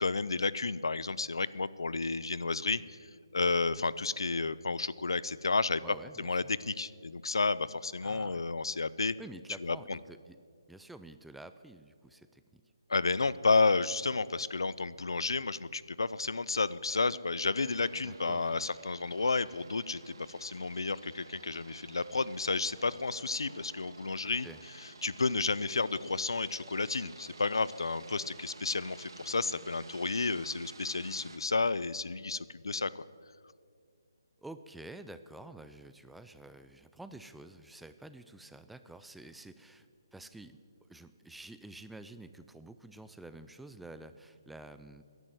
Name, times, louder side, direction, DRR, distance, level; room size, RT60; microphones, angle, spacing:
voice 1, 0.0-3.0 3.3-5.8 6.2-9.1 9.6-10.0 12.9-24.5 25.0-33.0, left 3 dB, 90° left, 18 dB, 0.5 m, -31 dB
voice 2, 5.8-6.5 8.0-8.4 9.2-10.4 10.7-12.6 18.0-18.7 24.4-24.6 34.4-39.9 40.1-40.6 40.9-45.0, right 2 dB, ahead, 10 dB, 0.3 m, -49 dB
sound 1, 17.6-31.4, right 3 dB, 70° right, 1.5 m, -53 dB
13.0 x 11.0 x 7.7 m, 2.1 s
hypercardioid pair, 165°, 2 cm